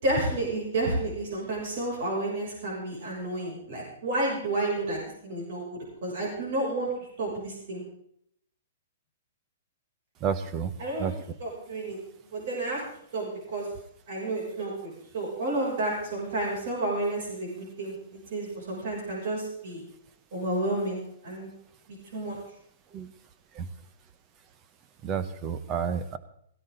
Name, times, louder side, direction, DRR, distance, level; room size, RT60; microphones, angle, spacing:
voice 1, 0.0-6.9 7.2-7.8 10.8-11.1 11.4-12.0 12.3-12.8 13.1-13.6 14.1-19.8 20.3-21.5 21.9-22.4, right 2 dB, 45° right, -3 dB, 6.4 m, -31 dB
voice 2, 10.2-10.7 11.0-11.1 22.9-23.1 23.6-23.7 25.0-26.2, right 7 dB, 20° right, 13 dB, 0.8 m, -30 dB
17.5 x 16.0 x 3.8 m, 0.70 s
hypercardioid pair, 175°, 0 cm